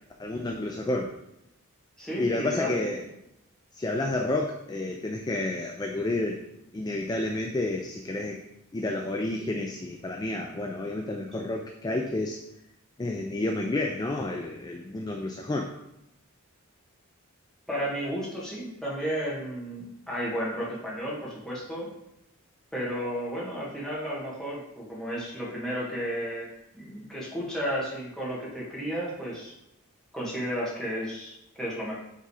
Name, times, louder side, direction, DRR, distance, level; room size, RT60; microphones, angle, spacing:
voice 1, 0.2-1.1 2.2-3.0 3.7-6.4 6.7-8.4 8.7-12.4 13.0-15.7, left 2 dB, 20° left, 2 dB, 0.4 m, -30 dB
voice 2, 2.0-2.9 11.3-11.4 17.7-21.9 22.7-26.5 26.7-29.5 30.1-32.0, equal, 5° left, -7 dB, 1.7 m, -33 dB
5.4 x 3.8 x 4.8 m, 0.86 s
head